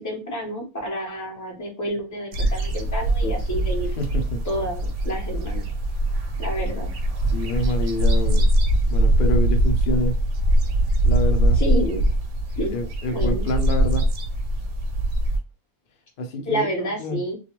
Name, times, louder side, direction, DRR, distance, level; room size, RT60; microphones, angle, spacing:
voice 1, 0.0-3.9 4.4-5.6 6.4-6.9 11.6-12.0 12.6-12.7 13.1-13.4 16.5-17.4, equal, 15° left, 0.6 m, -29 dB
sound 1, 2.3-15.4, right 1 dB, 80° right, 1.0 m, -22 dB
voice 2, 4.0-4.4 7.3-8.5 8.8-10.2 11.0-11.6 12.5-14.1 16.2-17.2, left 2 dB, 60° left, 0.5 m, -27 dB
2.3 x 2.3 x 2.9 m
omnidirectional pair, 1.5 m